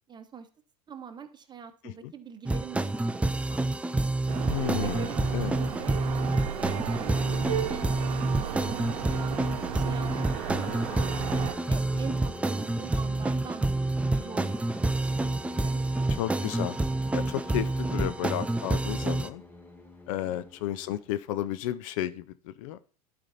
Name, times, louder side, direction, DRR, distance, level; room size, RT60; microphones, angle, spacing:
voice 1, 0.1-0.5 0.9-4.5 4.8-5.2 5.6-5.9 6.5-7.8 8.1-9.3 9.7-10.7 11.1-13.7 14.0-15.3 15.6-16.5 20.2-20.4, right 7 dB, 20° right, 9 dB, 1.1 m, -45 dB
sound 1, 2.5-19.3, right 2 dB, 5° right, 0.4 m, -28 dB
sound 2, 4.3-11.5, right 9 dB, 65° right, 0.9 m, -35 dB
voice 2, 4.5-5.1 5.3-5.5 16.2-16.8 17.1-19.4 20.1-22.8, left 13 dB, 55° left, 14 dB, 0.6 m, -32 dB
sound 3, 10.1-21.5, left 2 dB, 10° left, 1.4 m, -46 dB
11.5 x 4.3 x 4.2 m, 0.41 s
hypercardioid pair, 85°, 20 cm